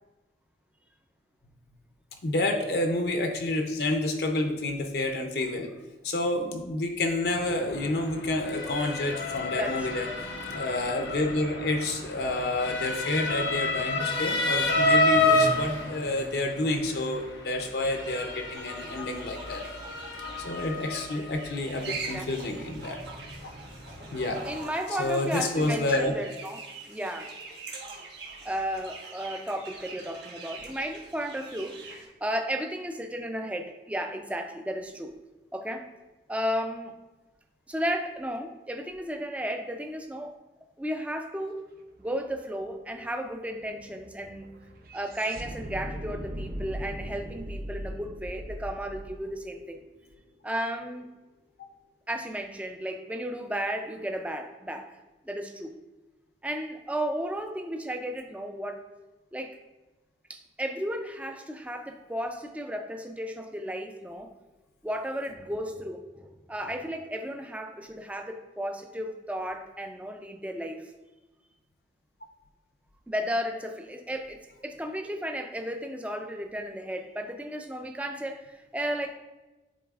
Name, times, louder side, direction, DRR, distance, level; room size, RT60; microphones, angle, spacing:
voice 1, 2.2-5.7 6.0-10.1 10.5-19.6 20.4-23.0 24.1-24.4 25.0-26.1, left 2 dB, 65° left, 4 dB, 0.6 m, -29 dB
Motor vehicle (road) / Siren, 7.2-24.6, left 2 dB, 85° left, 1.0 m, -30 dB
voice 2, 9.6-9.9 21.8-22.5 24.0-24.1 24.4-26.6 26.9-27.3 28.4-35.2 35.5-35.9 36.3-36.9 37.7-40.3 40.8-41.6 42.0-44.6 44.9-49.8 50.4-51.1 52.1-55.0 55.2-55.8 56.4-58.8 59.3-59.6 60.3-64.3 64.8-70.9 73.1-79.1, equal, 10° right, 5 dB, 0.4 m, -34 dB
sound 1, 18.5-32.1, right 4 dB, 75° right, 1.2 m, -43 dB
sound 2, 41.9-42.0 42.3-50.5, equal, 55° right, 0.6 m, -40 dB
10.0 x 3.9 x 2.4 m, 1.1 s
head